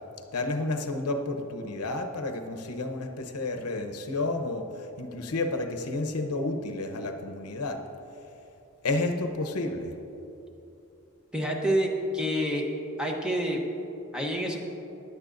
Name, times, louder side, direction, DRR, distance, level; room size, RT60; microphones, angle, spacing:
voice 1, 0.3-7.8 8.8-10.0, left 2 dB, 85° left, 6 dB, 0.8 m, -31 dB
voice 2, 11.3-12.6 13.0-13.6 14.1-14.6, equal, 5° right, 0 dB, 0.9 m, -27 dB
15.5 x 11.0 x 2.6 m, 2.8 s
head